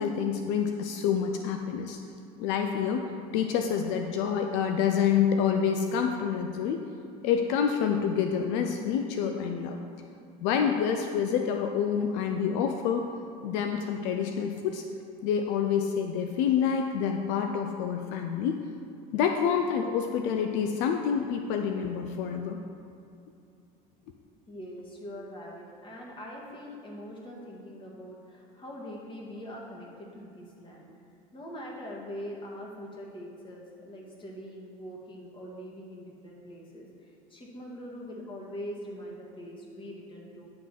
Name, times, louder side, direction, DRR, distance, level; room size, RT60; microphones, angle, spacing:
voice 1, 0.0-2.0 2.4-6.8 7.2-9.8 10.4-13.1 13.4-14.8 15.2-18.6 19.1-22.6, left 7 dB, 75° left, 4 dB, 0.5 m, -27 dB
voice 2, 24.5-30.9 31.3-40.5, equal, 25° left, -3 dB, 2.0 m, -43 dB
9.8 x 3.7 x 5.8 m, 2.7 s
supercardioid pair, 90°, 19 cm